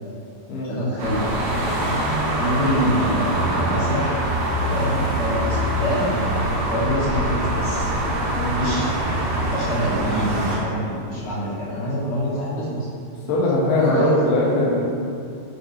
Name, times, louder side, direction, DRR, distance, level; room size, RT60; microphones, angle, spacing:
voice 1, 0.6-1.3 2.4-6.1 6.7-7.9 8.6-9.0 9.5-12.9 13.8-14.4 14.6-14.7, equal, 40° left, -9 dB, 2.7 m, -25 dB
sound 1, 1.0-10.6, right 1 dB, 85° right, 3.3 m, -24 dB
voice 2, 13.3-14.9, left 1 dB, 80° left, -5 dB, 2.9 m, -20 dB
9.6 x 7.8 x 3.1 m, 2.5 s
omnidirectional pair, 4.0 m